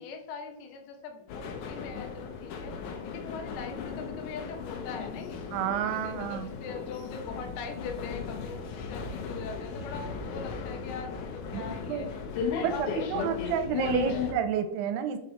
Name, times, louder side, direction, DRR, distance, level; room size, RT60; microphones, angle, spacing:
voice 1, 0.0-2.7 3.1-5.4 5.9-12.2 12.6-14.4, left 5 dB, 90° left, 3 dB, 3.4 m, -42 dB
sound 1, 1.3-14.3, left 6 dB, 75° left, 2.6 m, -36 dB
voice 2, 5.5-6.5 11.5-12.1 12.6-15.2, right 8 dB, 85° right, 8 dB, 2.6 m, -30 dB
6.1 x 5.3 x 5.6 m, 0.86 s
omnidirectional pair, 4.9 m